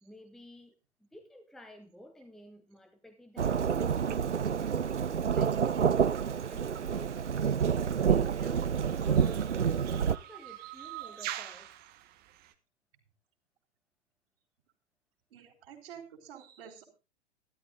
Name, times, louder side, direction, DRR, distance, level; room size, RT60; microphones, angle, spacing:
voice 1, 0.0-4.1 4.7-5.7 6.4-7.2 7.8-8.7 9.0-9.5 10.1-11.7, equal, ahead, 7 dB, 0.9 m, -53 dB
Thunderstorm / Rain, 3.4-10.2, right 7 dB, 90° right, 0.5 m, -28 dB
sound 1, 6.9-12.5, right 13 dB, 25° right, 1.4 m, -45 dB
voice 2, 15.3-16.8, right 8 dB, 60° right, -4 dB, 3.8 m, -49 dB
12.5 x 12.0 x 3.9 m, 0.31 s
figure-of-eight pair, 105°, 35 cm